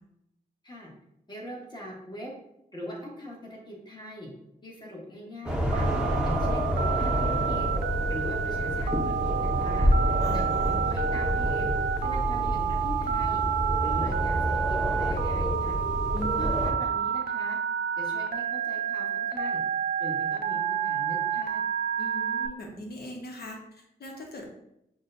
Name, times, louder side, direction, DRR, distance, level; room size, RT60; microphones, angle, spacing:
voice 1, 1.3-2.3 2.7-4.3 4.6-5.9 6.2-7.7 8.1-9.9 10.3-11.7 12.0-13.4 13.8-15.8 16.4-17.6 18.0-19.6 20.0-21.6, equal, 25° left, -2 dB, 1.2 m, -41 dB
sound 1, 5.5-16.7, equal, 5° right, 0.6 m, -28 dB
Telephone, 5.7-22.5, right 8 dB, 85° right, 0.4 m, -29 dB
voice 2, 10.2-10.8 16.1-16.4 22.0-24.5, left 1 dB, 75° left, 0 dB, 0.9 m, -40 dB
6.0 x 2.2 x 2.6 m, 0.81 s
cardioid pair, 80°, 16 cm